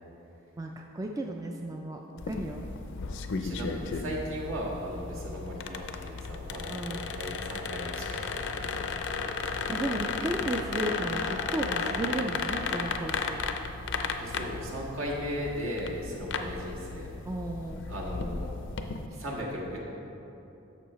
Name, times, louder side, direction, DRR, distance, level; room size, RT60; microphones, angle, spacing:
voice 1, 0.6-2.0 2.3-2.7 5.1-5.5 6.7-7.1 9.7-13.4 17.3-17.9, right 1 dB, 15° right, 2 dB, 0.3 m, -34 dB
sound 1, 2.2-19.1, left 4 dB, 60° left, 0.5 m, -34 dB
voice 2, 3.4-8.7 14.2-17.1 17.9-18.5 19.1-19.8, equal, 70° right, -4 dB, 1.6 m, -37 dB
11.0 x 7.0 x 3.1 m, 3.0 s
head